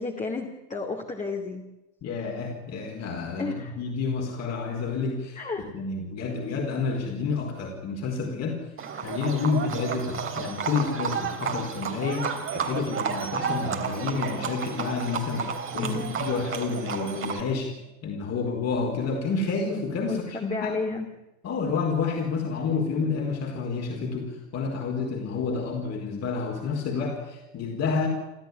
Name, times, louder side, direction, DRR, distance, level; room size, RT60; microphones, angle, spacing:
voice 1, 0.0-1.6 3.4-3.8 5.4-5.8 15.8-16.2 20.1-21.1, left 4 dB, 20° left, 1 dB, 2.8 m, -32 dB
voice 2, 2.0-8.6 9.0-17.7 18.0-20.7 21.4-28.1, left 4 dB, 40° left, 1 dB, 4.7 m, -29 dB
Livestock farm animals working animals, 8.8-17.4, right 6 dB, 30° right, 3.2 m, -32 dB
30.0 x 13.0 x 9.8 m, 0.99 s
hypercardioid pair, 80°, 39 cm